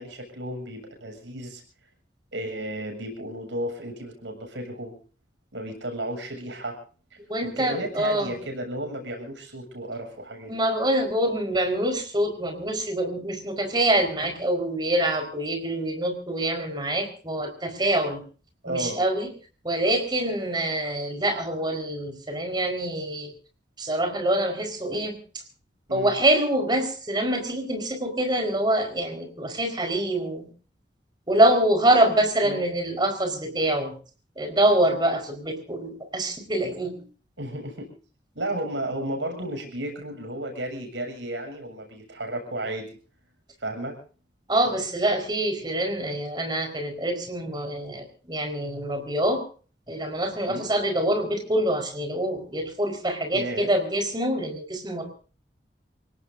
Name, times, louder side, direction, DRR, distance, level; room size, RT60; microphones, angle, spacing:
voice 1, 0.0-1.6 2.3-5.0 5.5-6.8 7.4-10.5 18.6-19.0 25.9-26.1 32.4-32.6 37.4-37.9 38.4-42.9 43.6-44.0 50.4-50.7 53.3-53.7, right 1 dB, 85° right, 3 dB, 7.4 m, -33 dB
voice 2, 7.3-8.4 10.5-18.2 18.7-19.3 19.6-23.3 23.8-25.2 25.9-30.5 31.3-33.9 34.4-37.0 44.5-49.4 49.9-55.1, right 1 dB, 25° right, 4 dB, 4.7 m, -25 dB
28.0 x 18.0 x 2.7 m, 0.40 s
head